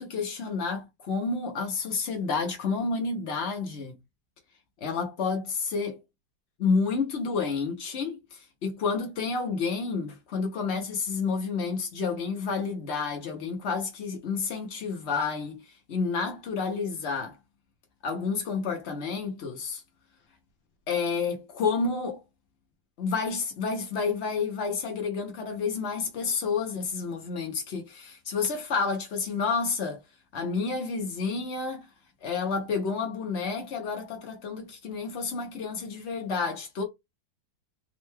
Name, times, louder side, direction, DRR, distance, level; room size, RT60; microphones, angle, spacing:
voice 1, 0.0-4.0 4.8-6.0 6.6-17.4 18.0-19.8 20.9-22.2 23.0-30.0 30.3-31.9 32.2-36.8, left 4 dB, 90° left, 0.5 m, -30 dB
3.6 x 2.2 x 3.2 m
omnidirectional pair, 2.2 m